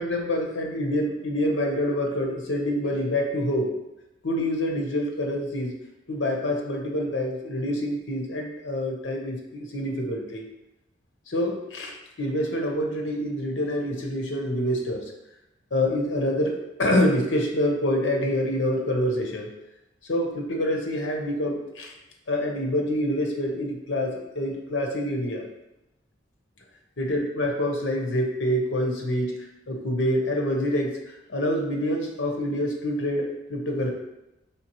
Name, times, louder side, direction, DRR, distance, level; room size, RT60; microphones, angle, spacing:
voice 1, 0.0-3.8 4.2-5.7 6.1-10.4 11.3-15.1 15.7-19.5 20.0-21.9 22.3-25.4 27.0-29.3 29.7-31.0 31.3-33.9, left 1 dB, 70° left, 1 dB, 0.9 m, -26 dB
4.3 x 3.3 x 3.0 m, 0.91 s
head